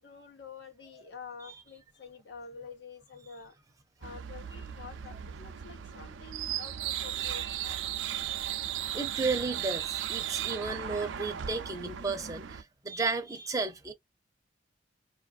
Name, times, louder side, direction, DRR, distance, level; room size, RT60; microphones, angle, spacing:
voice 1, 0.0-3.5 4.0-7.8, left 5 dB, 60° left, 0.9 m, -48 dB
sound 1, 4.0-12.6, right 10 dB, 80° right, 0.4 m, -36 dB
voice 2, 7.2-7.6 8.9-13.9, right 3 dB, 20° right, 0.6 m, -33 dB
4.9 x 2.5 x 2.4 m
head